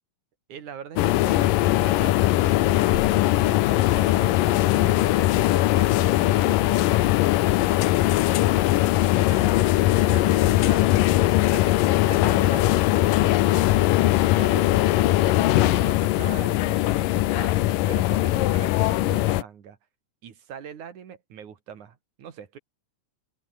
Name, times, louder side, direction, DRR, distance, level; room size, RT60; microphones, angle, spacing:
voice 1, 0.5-6.9 9.1-11.1 11.4-13.9 14.3-19.8 20.2-22.6, right 8 dB, 65° right, 3.6 m, -42 dB
sound 1, 1.0-19.4, left 16 dB, 85° left, 2.6 m, -20 dB
open air
omnidirectional pair, 3.9 m